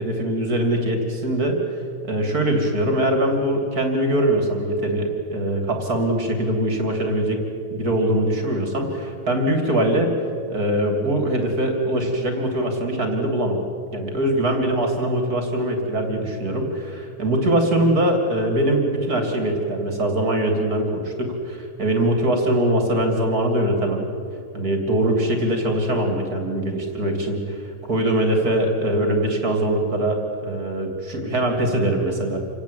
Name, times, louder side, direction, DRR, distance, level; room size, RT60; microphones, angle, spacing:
voice 1, 0.0-1.6 2.0-7.4 7.7-10.1 10.5-13.6 13.9-24.1 24.5-32.4, right 1 dB, 30° right, 3 dB, 3.4 m, -22 dB
28.0 x 18.0 x 8.6 m, 2.5 s
omnidirectional pair, 3.4 m